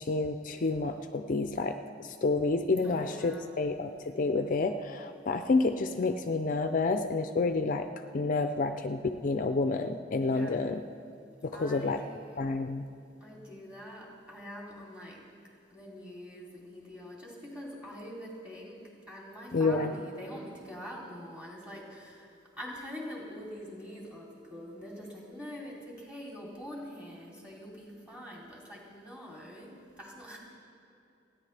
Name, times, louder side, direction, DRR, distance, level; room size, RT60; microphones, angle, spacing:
voice 1, 0.0-7.9 8.1-10.8 11.4-12.0 12.4-12.9 19.5-19.9, left 3 dB, 45° left, 8 dB, 0.4 m, -29 dB
voice 2, 2.8-3.5 10.2-10.7 11.5-12.4 13.2-15.2 15.7-18.8 19.1-22.3 22.6-30.4, equal, 5° right, -4 dB, 3.0 m, -44 dB
30.0 x 10.5 x 3.3 m, 2.8 s
head